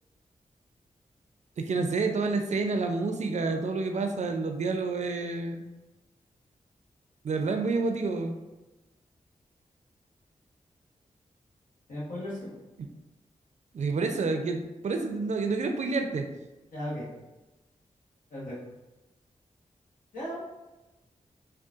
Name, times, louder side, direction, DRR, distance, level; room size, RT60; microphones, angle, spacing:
voice 1, 1.6-5.6 7.2-8.4 12.8-12.9 13.7-16.3, right 3 dB, 55° right, 5 dB, 0.4 m, -29 dB
voice 2, 11.9-12.5 16.7-17.1 18.3-18.5 20.1-20.4, equal, 75° left, -6 dB, 1.1 m, -36 dB
3.8 x 2.3 x 2.4 m, 1.1 s
cardioid pair, 40°, 14 cm